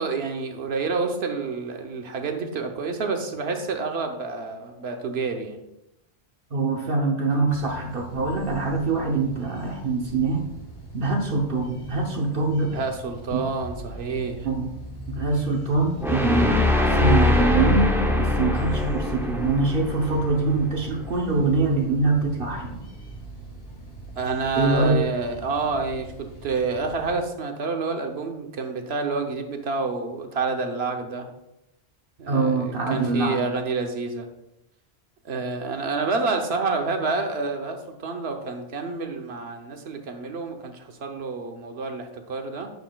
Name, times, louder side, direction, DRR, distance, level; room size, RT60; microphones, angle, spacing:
voice 1, 0.0-5.6 12.7-14.5 24.2-31.3 32.2-34.3 35.2-42.7, right 4 dB, 90° right, 4 dB, 1.1 m, -28 dB
voice 2, 6.5-10.5 10.9-12.8 13.3-13.4 14.4-14.7 15.1-22.8 24.5-25.0 32.3-33.4, right 3 dB, 60° right, 1 dB, 1.1 m, -24 dB
sound 1, 7.5-27.2, right 1 dB, 75° left, 1.9 m, -40 dB
sound 2, 16.0-21.1, left 2 dB, 5° right, 0.6 m, -23 dB
9.4 x 7.1 x 2.3 m, 0.87 s
omnidirectional pair, 1.0 m